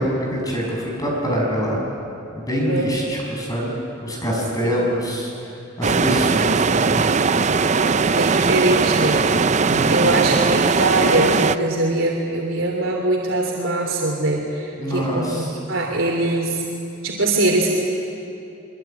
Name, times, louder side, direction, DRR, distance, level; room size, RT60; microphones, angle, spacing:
voice 1, 0.0-1.8 2.3-5.3 5.8-7.0 9.6-10.1 14.8-15.5, equal, 20° left, -2 dB, 6.8 m, -25 dB
voice 2, 4.6-5.0 7.7-9.2 9.9-16.6 17.0-17.7, right 2 dB, 85° right, 0 dB, 3.2 m, -22 dB
sound 1, 5.8-11.6, right 4 dB, 35° right, 0.5 m, -19 dB
24.0 x 23.5 x 9.2 m, 2.9 s
head